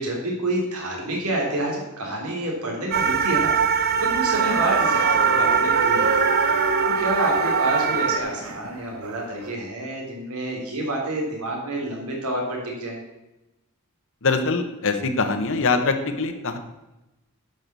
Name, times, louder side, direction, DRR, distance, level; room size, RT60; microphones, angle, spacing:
voice 1, 0.0-6.3 6.9-13.0, right 1 dB, 90° right, -1 dB, 3.7 m, -28 dB
sound 1, 2.9-8.2, right 6 dB, 45° right, 0.7 m, -22 dB
sound 2, 4.3-9.5, right 3 dB, 70° right, 1.2 m, -28 dB
voice 2, 14.2-16.6, left 4 dB, 60° left, 7 dB, 1.2 m, -23 dB
10.5 x 5.9 x 6.9 m, 0.98 s
head